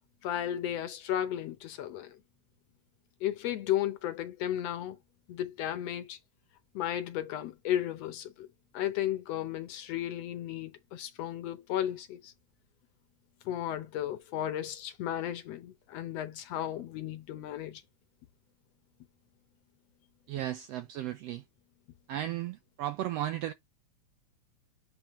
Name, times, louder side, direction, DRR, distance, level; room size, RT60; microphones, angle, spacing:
voice 1, 0.2-2.2 3.2-5.0 5.3-6.2 6.8-8.5 8.7-12.3 13.5-17.8, left 11 dB, 70° left, 1.7 m, -34 dB
voice 2, 20.3-21.4 22.1-23.5, right 12 dB, 85° right, 1.4 m, -35 dB
9.0 x 3.7 x 3.1 m
omnidirectional pair, 3.6 m